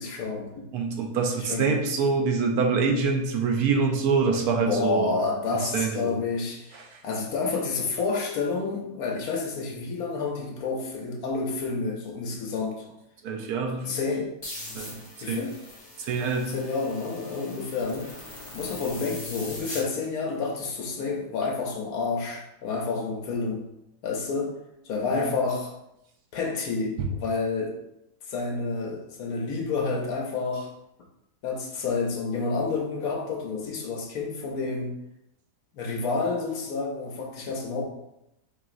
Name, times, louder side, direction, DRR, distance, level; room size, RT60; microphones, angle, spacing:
voice 1, 0.0-0.7 1.4-1.8 4.6-12.8 13.9-14.3 15.2-15.6 16.5-18.1 18.5-23.6 24.0-24.5 24.8-25.7 26.3-27.8 28.3-30.7 31.4-35.0 35.7-37.8, left 4 dB, 70° left, 0 dB, 1.1 m, -29 dB
voice 2, 0.7-5.1 5.6-6.2 6.7-7.0 13.2-14.0 14.7-15.0 15.3-15.5 16.0-16.5 25.1-25.2 27.0-27.1, right 5 dB, 75° right, 3 dB, 1.1 m, -25 dB
sound 1, 14.4-19.8, left 2 dB, 25° left, 0.6 m, -41 dB
4.7 x 2.9 x 2.5 m, 0.86 s
omnidirectional pair, 1.7 m